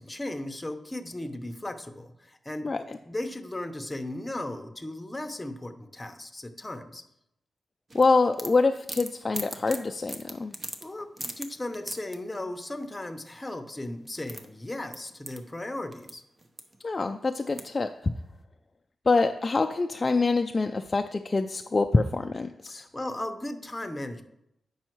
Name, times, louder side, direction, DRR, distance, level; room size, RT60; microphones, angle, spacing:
voice 1, 0.0-7.0 10.8-16.2 22.7-24.2, left 1 dB, 15° left, 6 dB, 0.8 m, -36 dB
voice 2, 2.6-3.0 7.9-10.5 16.8-18.1 19.1-22.8, left 3 dB, 35° left, 5 dB, 0.4 m, -25 dB
Combination Lock Sounds, 7.9-12.2 13.8-13.9 14.0-16.1 16.4-17.0 17.5-17.9, right 1 dB, 30° right, 0.9 m, -39 dB
8.7 x 5.5 x 4.5 m, 0.83 s
cardioid pair, 90°, 0 cm